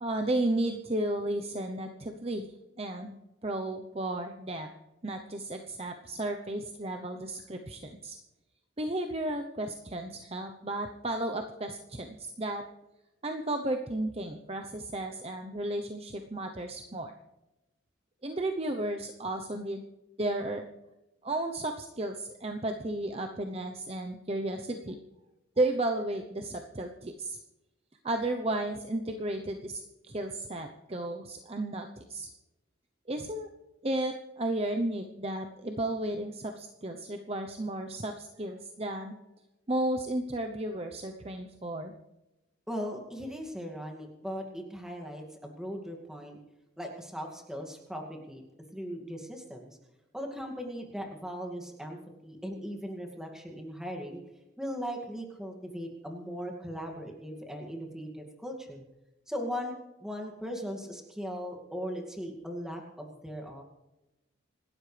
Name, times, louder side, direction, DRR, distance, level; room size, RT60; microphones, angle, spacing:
voice 1, 0.0-4.7 5.0-8.2 8.8-12.6 13.2-17.1 18.2-19.8 20.2-20.6 21.2-25.0 25.6-27.4 28.0-32.3 33.1-33.5 33.8-39.1 39.7-41.9, right 1 dB, 30° right, 4 dB, 0.8 m, -33 dB
voice 2, 42.7-46.4 46.8-48.4 48.7-49.8 50.1-54.2 54.6-58.8 59.3-59.7 60.0-63.6, equal, 5° right, 1 dB, 2.2 m, -38 dB
26.5 x 12.5 x 3.4 m, 0.99 s
head